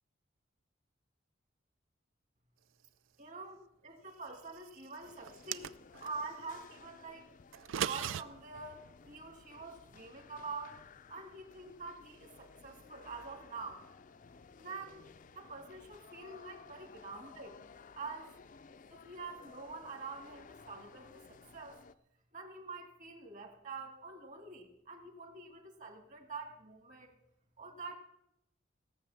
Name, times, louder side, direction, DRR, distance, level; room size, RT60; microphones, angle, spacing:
voice 1, 3.2-7.2 7.8-10.8 11.1-13.8 14.6-15.0 15.3-17.5 18.0-18.3 18.9-21.8 22.3-27.1 27.6-28.0, right 4 dB, 40° right, 4 dB, 1.9 m, -46 dB
sound 1, 5.0-22.0, left 5 dB, 45° left, 0.4 m, -57 dB
sound 2, 5.2-6.2 7.5-8.2, right 9 dB, 85° right, 0.4 m, -36 dB
17.5 x 6.6 x 7.0 m, 0.81 s
head